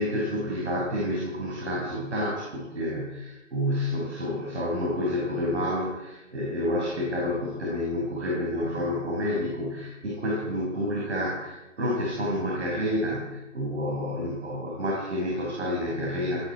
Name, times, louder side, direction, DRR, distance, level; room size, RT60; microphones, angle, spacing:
voice 1, 0.0-16.5, left 1 dB, 60° right, -4 dB, 6.2 m, -29 dB
18.0 x 15.5 x 4.8 m, 1.0 s
figure-of-eight pair, 155°, 39 cm